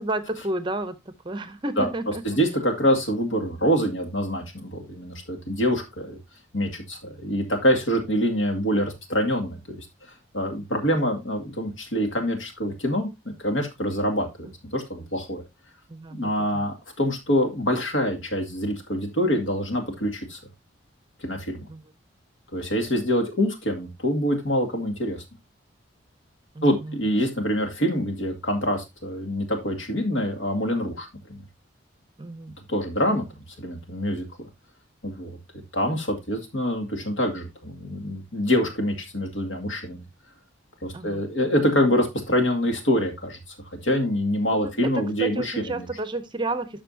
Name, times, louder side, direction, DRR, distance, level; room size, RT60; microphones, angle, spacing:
voice 1, 0.0-2.4 15.9-16.6 21.7-21.8 26.5-27.0 32.2-32.6 40.9-41.3 44.5-46.8, right 2 dB, 25° right, 0.6 m, -31 dB
voice 2, 2.2-6.2 6.5-9.9 10.3-15.4 16.1-20.4 21.2-21.6 22.5-25.2 26.6-31.4 32.7-33.2 33.6-34.5 35.0-35.4 35.7-40.0 40.8-43.4 43.8-45.9, equal, 75° left, 2.2 m, -25 dB
12.5 x 5.1 x 2.7 m
head